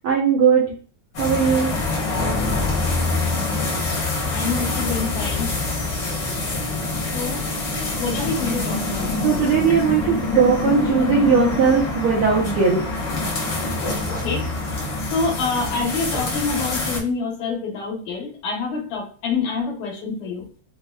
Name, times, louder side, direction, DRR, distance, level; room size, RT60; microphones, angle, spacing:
voice 1, 0.0-0.6 1.2-1.7 9.2-12.8, right 6 dB, 75° right, -4 dB, 1.2 m, -18 dB
sound 1, 1.1-17.0, left 2 dB, 55° left, 1.4 m, -25 dB
voice 2, 4.3-5.5 7.1-7.5 8.0-9.2 14.2-14.5 15.1-20.4, left 4 dB, 80° left, -2 dB, 2.4 m, -26 dB
5.5 x 2.1 x 2.3 m, 0.41 s
omnidirectional pair, 3.4 m